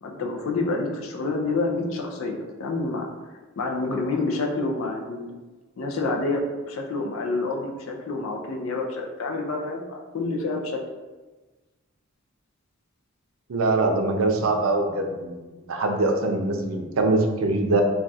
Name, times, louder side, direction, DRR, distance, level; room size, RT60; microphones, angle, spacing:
voice 1, 0.0-3.1 3.6-5.3 5.8-10.8, left 3 dB, 90° left, 2 dB, 0.5 m, -28 dB
voice 2, 13.5-15.4 15.7-17.8, right 2 dB, 85° right, 3 dB, 0.5 m, -23 dB
2.4 x 2.3 x 3.9 m, 1.2 s
head